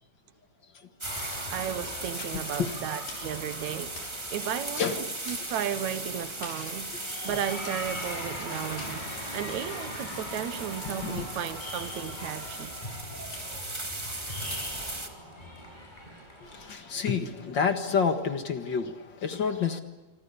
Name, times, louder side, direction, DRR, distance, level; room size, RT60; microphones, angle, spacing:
sound 1, 1.0-16.7, left 1 dB, 10° left, 6.7 m, -41 dB
sound 2, 1.0-15.1, right 2 dB, 15° right, 1.0 m, -38 dB
voice 1, 1.5-4.0 4.3-6.9 7.2-9.1 9.3-12.7, right 9 dB, 65° right, 2.2 m, -34 dB
voice 2, 2.2-3.0 4.8-5.3 6.6-6.7 8.5-8.6 10.8-11.3 16.4-19.8, left 6 dB, 45° left, 1.6 m, -30 dB
sound 3, 2.8-17.2, left 3 dB, 80° left, 7.5 m, -52 dB
27.0 x 25.0 x 6.9 m
omnidirectional pair, 4.0 m